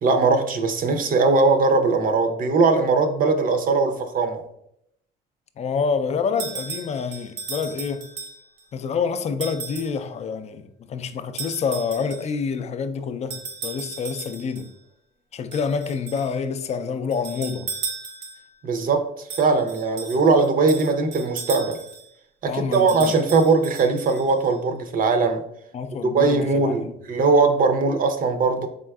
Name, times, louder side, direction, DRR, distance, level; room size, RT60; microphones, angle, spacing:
voice 1, 0.0-4.4 18.6-21.8 22.4-25.4 26.0-28.7, right 4 dB, 45° right, 0.6 m, -20 dB
voice 2, 5.6-8.1 8.7-14.7 15.3-17.7 22.5-23.1 25.7-26.9, left 5 dB, 35° left, 0.4 m, -27 dB
sound 1, 6.4-8.6 9.4-10.0 11.4-12.4 13.3-14.7 15.5-16.3 17.1-18.5 19.3-22.1 22.7-24.5, right 5 dB, 70° right, 0.9 m, -36 dB
3.8 x 3.6 x 2.3 m
supercardioid pair, 70°, 20 cm